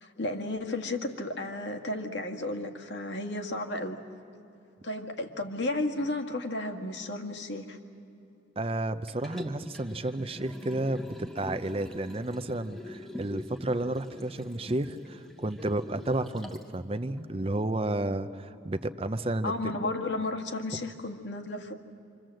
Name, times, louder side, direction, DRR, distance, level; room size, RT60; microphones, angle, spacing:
voice 1, 0.0-4.0 4.8-7.8 19.4-21.7, left 2 dB, 65° left, 3 dB, 1.8 m, -33 dB
voice 2, 8.6-19.7, right 1 dB, 30° right, 10 dB, 0.6 m, -32 dB
Liquid, 9.1-16.7 17.2-17.3, left 1 dB, ahead, 1.0 m, -44 dB
26.5 x 26.5 x 7.7 m, 2.7 s
head